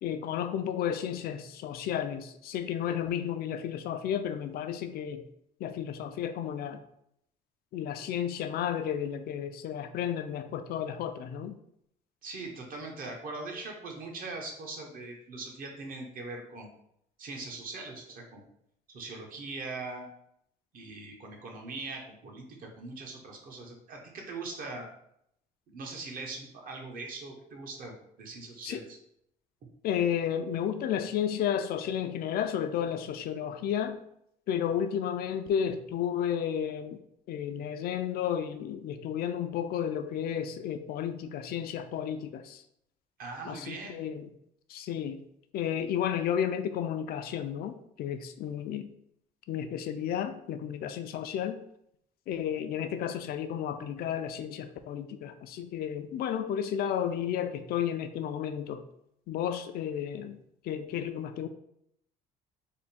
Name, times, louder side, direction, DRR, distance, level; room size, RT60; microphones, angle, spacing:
voice 1, 0.0-5.2 5.6-6.8 7.7-11.5 28.6-28.8 29.8-34.0 34.5-37.0 37.3-42.6 43.5-44.3 44.7-45.2 45.5-48.9 49.5-51.6 52.3-58.8 59.3-60.4 60.6-61.5, left 9 dB, 65° left, 8 dB, 0.4 m, -32 dB
voice 2, 12.2-16.7 17.2-18.4 18.9-20.1 20.7-24.9 25.7-29.0 43.2-44.0, right 3 dB, 55° right, 1 dB, 0.9 m, -41 dB
3.5 x 2.2 x 4.1 m, 0.74 s
cardioid pair, 110°, 17 cm